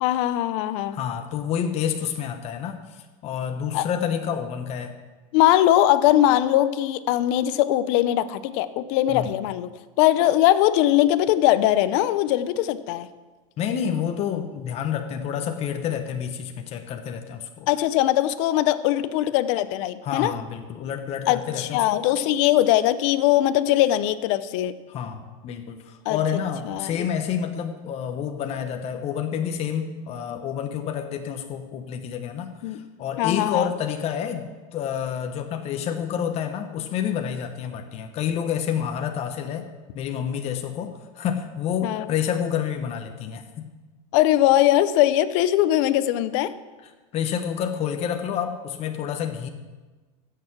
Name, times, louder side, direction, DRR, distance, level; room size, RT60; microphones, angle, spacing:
voice 1, 0.0-1.0 3.7-3.9 5.3-9.7 10.0-13.1 17.7-20.3 21.3-24.7 26.1-26.2 26.7-27.1 32.6-32.8 33.2-33.7 41.8-42.1 44.1-46.5, left 13 dB, 60° left, 14 dB, 0.7 m, -21 dB
voice 2, 0.9-4.9 9.1-9.3 13.6-17.7 20.0-22.1 24.9-39.7 39.9-43.7 47.1-49.5, left 8 dB, 35° left, 6 dB, 1.0 m, -29 dB
15.5 x 6.8 x 6.0 m, 1.3 s
supercardioid pair, 130°, 18 cm